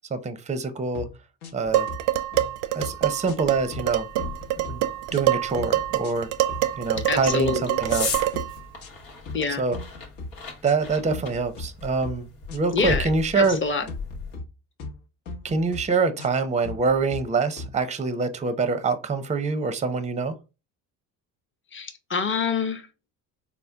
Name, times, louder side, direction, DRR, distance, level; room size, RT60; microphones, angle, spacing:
voice 1, 0.1-1.1 1.5-1.9 2.7-4.1 4.7-4.8 5.1-6.3 6.8-8.1 9.6-9.8 10.6-13.6 15.4-20.3, right 4 dB, 15° right, 0.6 m, -25 dB
sound 1, 1.0-1.1 1.4-2.0 2.3-2.5 2.8-3.9 4.2-4.8 5.1-5.3 5.6-6.1 6.5-6.7 6.9-7.5 7.9-8.1 8.3-8.9 9.3-9.4 9.7-10.3 10.6-11.7 12.0-12.2 12.5-13.1 13.4-13.6 13.9-14.5 14.8-15.0 15.3-15.8 16.2-16.4 16.6-17.2 17.6-17.7, left 2 dB, 65° left, 1.0 m, -38 dB
Dishes pots and pans, 1.7-8.6, right 14 dB, 75° right, 0.6 m, -26 dB
sound 2, 3.4-14.4, left 3 dB, 85° left, 1.2 m, -38 dB
voice 2, 7.1-7.8 9.3-9.6 12.7-13.1 13.4-13.8 21.7-22.8, left 5 dB, 25° left, 0.9 m, -26 dB
4.3 x 2.1 x 3.4 m
supercardioid pair, 70°, 44 cm